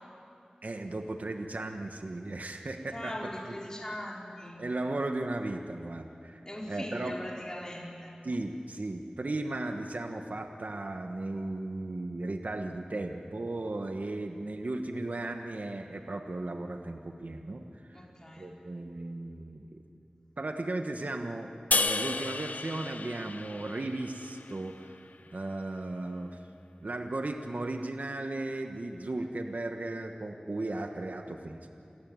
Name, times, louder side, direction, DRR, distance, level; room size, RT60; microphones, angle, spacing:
voice 1, 0.6-3.1 3.5-3.6 4.6-7.1 8.2-17.6 17.9-18.1 18.4-19.8 20.4-24.9 25.3-26.4 26.8-31.6, right 2 dB, 75° right, 5 dB, 1.3 m, -36 dB
voice 2, 2.9-4.6 6.4-8.1 17.9-18.5, left 1 dB, 25° left, -3 dB, 4.7 m, -40 dB
sound 1, 21.7-25.0, left 3 dB, 90° left, 0.8 m, -32 dB
28.0 x 14.5 x 9.5 m, 2.6 s
wide cardioid pair, 45°, 3 cm